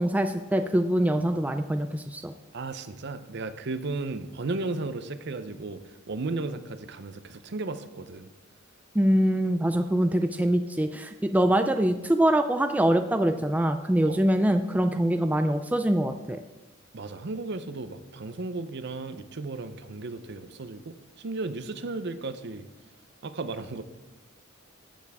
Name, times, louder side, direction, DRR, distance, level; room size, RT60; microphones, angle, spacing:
voice 1, 0.0-2.3 8.9-16.4, right 1 dB, 5° right, 7 dB, 0.3 m, -24 dB
voice 2, 2.5-5.8 6.1-8.3 14.1-14.2 16.9-22.7 23.2-23.8, right 3 dB, 55° right, 11 dB, 0.6 m, -34 dB
13.5 x 7.2 x 3.5 m, 1.2 s
head